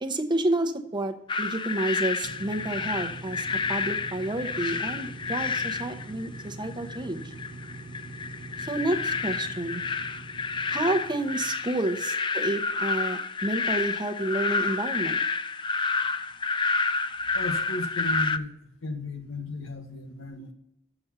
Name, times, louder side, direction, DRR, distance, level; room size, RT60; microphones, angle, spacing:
voice 1, 0.0-7.3 8.6-9.8 10.7-15.2, right 1 dB, 25° right, 7 dB, 0.7 m, -30 dB
sound 1, 1.3-18.4, left 4 dB, 25° left, 0.3 m, -30 dB
sound 2, 2.2-12.0, right 2 dB, 80° right, 0.7 m, -43 dB
voice 2, 17.3-18.5 18.8-20.5, left 2 dB, 85° left, 6 dB, 1.2 m, -35 dB
7.2 x 6.8 x 5.8 m, 0.84 s
head